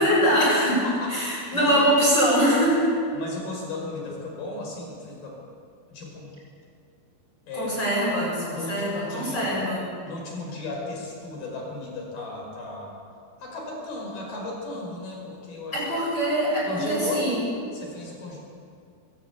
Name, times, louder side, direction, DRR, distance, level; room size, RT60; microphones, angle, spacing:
voice 1, 0.0-2.9 7.5-9.8 15.7-17.4, equal, 20° left, -5 dB, 8.0 m, -23 dB
voice 2, 0.6-1.8 3.1-5.4 5.9-6.3 7.5-7.7 8.5-9.5 10.1-13.0 13.4-15.8 16.7-17.4 17.7-18.4, left 2 dB, 55° left, -1 dB, 7.2 m, -35 dB
21.0 x 18.5 x 8.4 m, 2.3 s
omnidirectional pair, 5.3 m